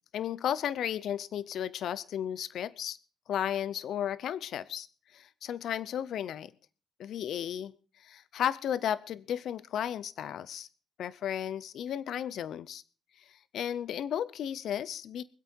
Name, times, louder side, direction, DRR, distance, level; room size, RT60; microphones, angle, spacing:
voice 1, 0.1-3.0 3.3-4.9 5.1-6.5 7.0-7.7 8.0-10.7 11.0-12.8 13.5-15.2, left 10 dB, 70° left, 18 dB, 0.6 m, -34 dB
24.0 x 8.3 x 4.6 m, 0.38 s
cardioid pair, 90°, 0 cm